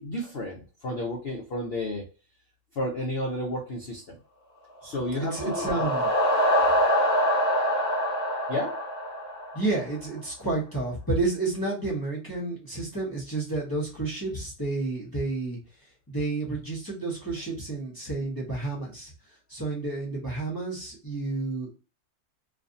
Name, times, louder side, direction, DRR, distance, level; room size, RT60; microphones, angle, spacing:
voice 1, 0.0-2.0 2.8-4.2 4.8-5.7 8.5-8.8, left 1 dB, 80° left, 0 dB, 0.5 m, -31 dB
sound 1, 4.9-9.8, equal, 30° right, 0.8 m, -25 dB
voice 2, 5.2-6.1 9.5-15.6 16.1-19.1 19.5-21.7, right 3 dB, 20° left, -5 dB, 0.5 m, -30 dB
2.5 x 2.5 x 2.5 m, 0.35 s
omnidirectional pair, 1.7 m